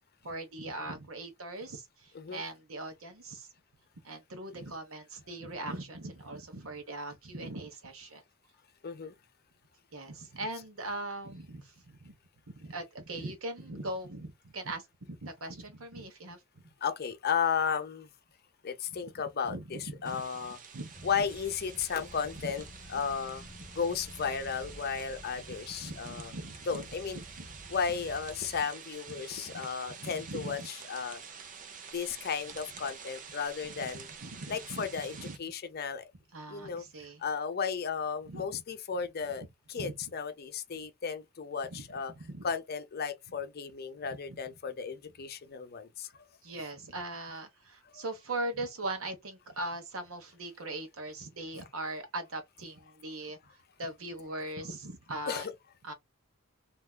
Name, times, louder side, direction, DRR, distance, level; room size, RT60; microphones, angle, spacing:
voice 1, 0.2-3.5 4.0-8.2 9.9-12.1 12.5-16.4 19.0-19.1 19.4-20.2 20.7-21.3 23.0-23.1 25.8-26.8 27.1-27.5 29.2-29.7 30.0-30.7 33.6-35.4 36.3-37.2 38.3-38.6 39.8-39.9 41.7-41.8 42.1-42.5 44.3-44.4 46.4-53.4 53.8-55.5 55.8-55.9, right 2 dB, 70° right, 1.1 m, -40 dB
voice 2, 8.8-9.1 16.8-18.1 18.6-20.6 21.0-22.6 22.9-23.5 23.7-26.3 26.7-27.2 27.7-31.2 31.9-34.1 34.5-36.1 36.5-36.8 37.2-42.1 42.4-46.3 47.9-48.0 55.3-55.5, left 6 dB, 45° left, 0.6 m, -34 dB
sound 1, 20.0-35.4, right 6 dB, 40° right, 0.5 m, -48 dB
sound 2, 20.9-28.6, equal, 20° left, 1.5 m, -51 dB
3.5 x 2.9 x 2.3 m
head